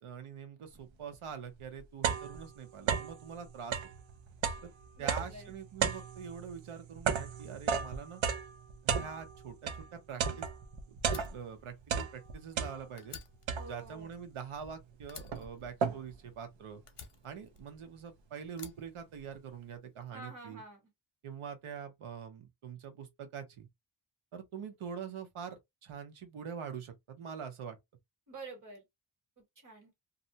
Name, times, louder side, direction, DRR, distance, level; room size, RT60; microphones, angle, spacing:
voice 1, 0.0-3.9 4.6-4.7 5.0-8.2 8.8-10.5 10.9-13.2 13.7-16.8 17.2-20.6 21.2-23.7 24.3-27.8, right 7 dB, 85° right, 0.9 m, -44 dB
sound 1, 1.1-1.2 1.6-3.2 3.6-9.9 10.2-11.6 11.8-13.1 13.5-14.0 14.6-14.7 15.0-16.3, right 6 dB, 70° right, 0.6 m, -34 dB
voice 2, 5.0-5.5 13.5-14.1 20.1-20.8 28.3-28.8 29.4-29.9, right 3 dB, 40° right, 1.5 m, -48 dB
Fire, 11.0-12.7 13.0-14.7 15.1-16.4 16.9-18.0 18.5-19.7, left 6 dB, 60° left, 0.8 m, -51 dB
2.6 x 2.1 x 2.7 m
wide cardioid pair, 160°, 49 cm